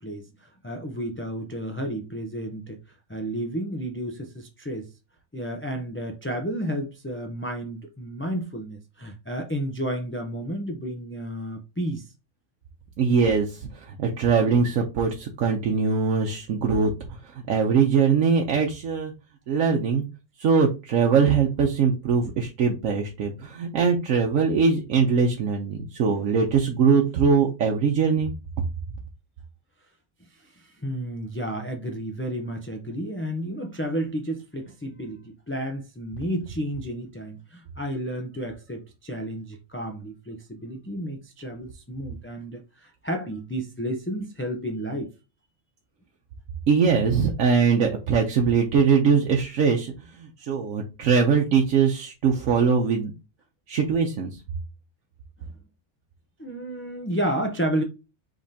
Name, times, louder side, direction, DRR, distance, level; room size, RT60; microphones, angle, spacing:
voice 1, 0.0-2.8 3.1-4.9 5.3-12.1 30.2-45.1 56.4-57.8, right 1 dB, 15° left, 0.5 m, -32 dB
voice 2, 13.0-16.9 17.2-19.1 19.5-20.0 20.4-28.3 46.7-53.1 53.7-54.4, right 5 dB, 90° right, 1.2 m, -22 dB
5.1 x 3.7 x 2.8 m
omnidirectional pair, 1.3 m